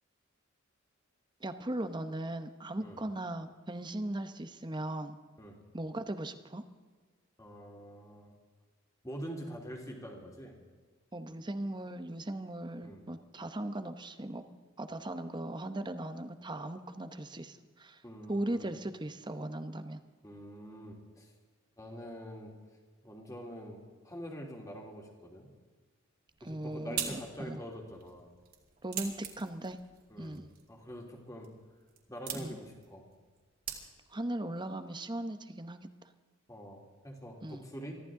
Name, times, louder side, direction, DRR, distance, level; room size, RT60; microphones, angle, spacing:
voice 1, 1.4-5.2 5.7-6.6 11.1-14.4 14.8-18.0 18.3-20.0 26.4-27.6 28.8-29.8 30.2-30.5 32.3-32.6 34.1-35.9 37.4-37.7, right 1 dB, 20° right, 9 dB, 0.8 m, -38 dB
voice 2, 7.4-8.3 9.0-10.6 12.8-13.0 18.0-18.6 20.2-21.3 21.8-22.5 23.0-25.5 26.4-28.3 30.1-30.4 30.7-31.5 32.1-33.1 36.5-38.0, equal, 15° left, 0 dB, 2.9 m, -45 dB
sound 1, 26.3-34.3, right 8 dB, 45° right, 2.6 m, -44 dB
23.5 x 14.5 x 3.7 m, 1.5 s
head